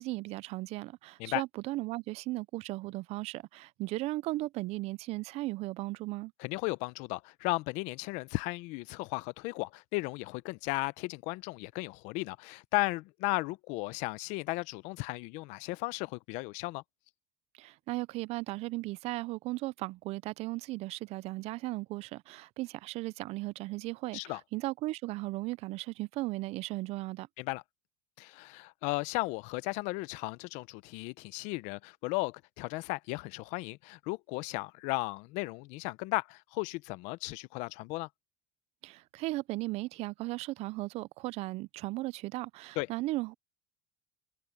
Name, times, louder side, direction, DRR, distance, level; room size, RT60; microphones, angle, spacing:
voice 1, 0.0-6.3 17.5-27.3 38.8-43.3, right 19 dB, 55° right, 0.4 m, -36 dB
voice 2, 6.4-16.8 24.1-24.4 27.4-27.6 28.2-38.1 42.8-42.9, left 23 dB, 70° left, 0.8 m, -35 dB
supercardioid pair, 115°, 13 cm